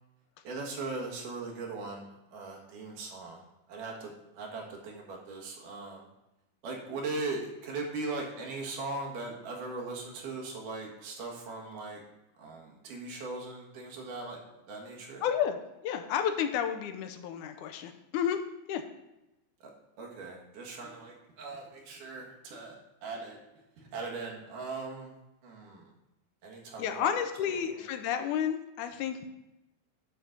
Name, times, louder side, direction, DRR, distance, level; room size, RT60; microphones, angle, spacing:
voice 1, 0.4-6.1 6.6-12.0 12.4-14.4 14.7-15.2 19.6-19.7 20.0-22.8 23.0-23.4 23.8-25.1 25.4-25.9 26.4-27.1 27.4-27.8, right 3 dB, 85° right, 0 dB, 3.1 m, -39 dB
voice 2, 15.2-18.4 18.7-18.8 26.8-29.3, left 8 dB, 80° left, 7 dB, 2.0 m, -31 dB
9.3 x 3.9 x 5.9 m, 0.95 s
omnidirectional pair, 3.6 m